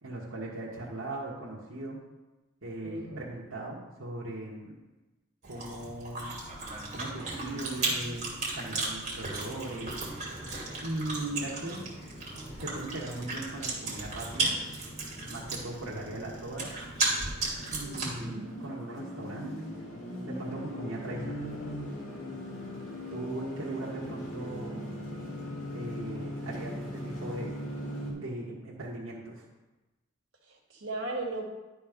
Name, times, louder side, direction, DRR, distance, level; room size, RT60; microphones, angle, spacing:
voice 1, 0.0-2.0 2.6-4.8 5.5-6.4 6.9-8.3 8.5-10.0 10.8-11.8 12.6-14.5 15.2-16.7 17.7-19.6 20.3-21.5 23.1-24.9 25.7-27.6 28.1-29.5, right 2 dB, 85° right, -5 dB, 1.5 m, -38 dB
voice 2, 2.8-3.2 17.8-18.4 30.5-31.4, right 2 dB, 65° right, -2 dB, 1.9 m, -37 dB
Chewing mastication, 5.4-18.3, right 3 dB, 35° right, 2.3 m, -35 dB
sound 1, 9.1-28.1, left 1 dB, 70° left, 2.3 m, -41 dB
11.0 x 4.4 x 5.3 m, 1.1 s
head